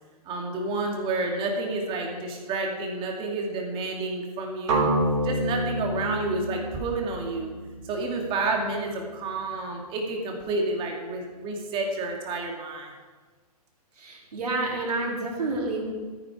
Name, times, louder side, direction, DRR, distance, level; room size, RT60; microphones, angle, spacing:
voice 1, 0.2-4.9 5.2-7.5 7.8-12.9, right 3 dB, 25° right, 1 dB, 2.6 m, -30 dB
sound 1, 4.7-8.6, right 1 dB, 50° right, 3.9 m, -28 dB
voice 2, 14.0-15.8, right 2 dB, 75° right, -2 dB, 4.1 m, -29 dB
13.5 x 9.9 x 4.9 m, 1.4 s
hypercardioid pair, 125°, 20 cm